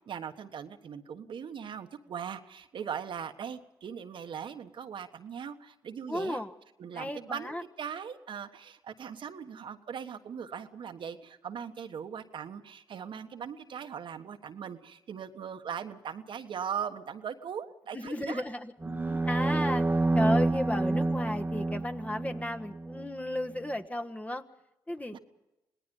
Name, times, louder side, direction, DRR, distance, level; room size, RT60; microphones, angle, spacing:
voice 1, 0.1-6.4 6.8-18.4 18.8-19.2 25.1-25.2, right 7 dB, 65° right, 7 dB, 1.4 m, -40 dB
voice 2, 6.1-6.5 6.9-7.6 17.9-18.7 19.3-19.8 20.1-24.4 24.9-25.2, left 1 dB, 15° left, 5 dB, 1.5 m, -34 dB
sound 1, 18.8-23.1, right 2 dB, 20° right, 1.1 m, -28 dB
26.5 x 18.5 x 5.4 m, 0.93 s
supercardioid pair, 50°, 9 cm